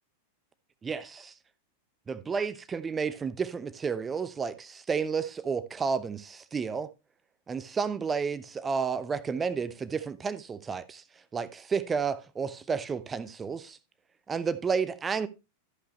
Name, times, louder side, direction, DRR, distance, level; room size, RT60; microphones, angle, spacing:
voice 1, 0.8-1.3 2.1-6.9 7.5-11.0 11.3-13.8 14.3-15.3, right 5 dB, 20° right, 0.7 m, -31 dB
13.0 x 5.7 x 3.0 m
figure-of-eight pair, 90°, 0 cm